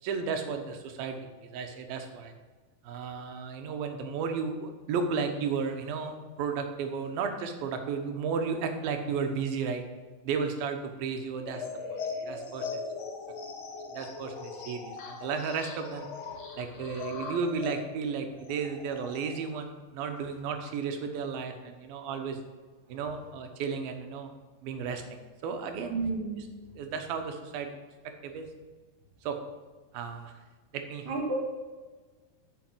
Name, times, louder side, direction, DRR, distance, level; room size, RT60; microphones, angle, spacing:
voice 1, 0.0-2.3 2.8-9.8 10.2-12.8 13.9-16.1 16.6-22.4 22.9-24.3 24.6-26.0 26.4-26.5 26.8-27.7 28.2-28.5 29.2-29.4 29.9-30.4 30.7-31.1, right 5 dB, 90° right, 6 dB, 2.8 m, -34 dB
sound 1, 11.4-19.5, left 4 dB, 60° left, 2.2 m, -40 dB
voice 2, 25.9-26.5 31.1-31.4, right 3 dB, 45° right, -1 dB, 2.7 m, -30 dB
9.0 x 6.5 x 6.1 m, 1.3 s
omnidirectional pair, 4.1 m